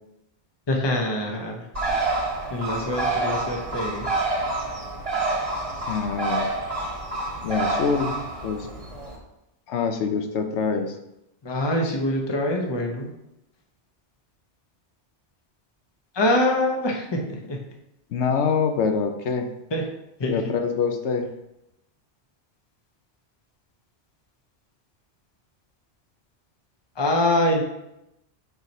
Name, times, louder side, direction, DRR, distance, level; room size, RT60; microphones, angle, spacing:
voice 1, 0.7-1.7 2.1-2.2 2.5-4.3 11.4-13.1 16.1-17.6 19.7-19.8 20.2-20.5 26.9-27.6, left 1 dB, 25° left, 0 dB, 0.8 m, -24 dB
Bird, 1.7-9.2, right 2 dB, 30° right, 1.2 m, -28 dB
voice 2, 5.9-6.4 7.4-8.2 8.4-8.7 9.7-11.0 18.1-19.5 20.3-21.3, left 5 dB, 85° left, 6 dB, 1.0 m, -25 dB
4.7 x 4.3 x 5.3 m, 0.86 s
omnidirectional pair, 1.1 m